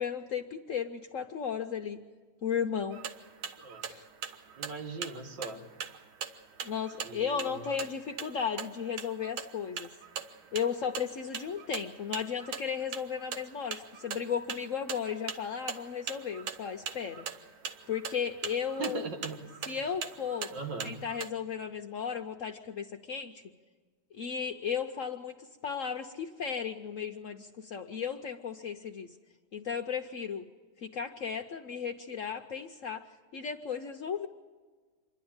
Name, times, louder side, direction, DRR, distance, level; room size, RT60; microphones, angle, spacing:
voice 1, 0.0-2.0 2.4-3.0 3.8-4.1 6.6-9.9 10.5-17.2 17.9-19.0 19.7-20.5 20.8-23.4 24.1-25.3 25.6-29.1 29.5-30.5 30.8-33.0 33.3-34.3, left 7 dB, 70° left, 5 dB, 0.7 m, -35 dB
sound 1, 2.9-21.3, right 7 dB, 85° right, 1.8 m, -42 dB
voice 2, 4.6-5.6 7.0-7.6 18.8-19.4 20.5-21.0, right 3 dB, 65° right, 4 dB, 2.1 m, -39 dB
26.5 x 11.5 x 8.7 m, 1.4 s
omnidirectional pair, 2.2 m